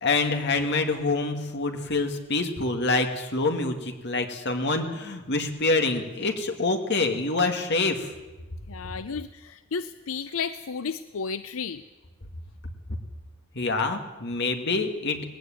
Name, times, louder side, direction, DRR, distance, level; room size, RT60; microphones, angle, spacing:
voice 1, 0.0-8.1 13.5-15.3, left 3 dB, 55° left, 4 dB, 2.2 m, -26 dB
voice 2, 8.7-11.8, left 5 dB, 85° left, 12 dB, 0.6 m, -33 dB
19.5 x 16.0 x 9.2 m, 1.2 s
head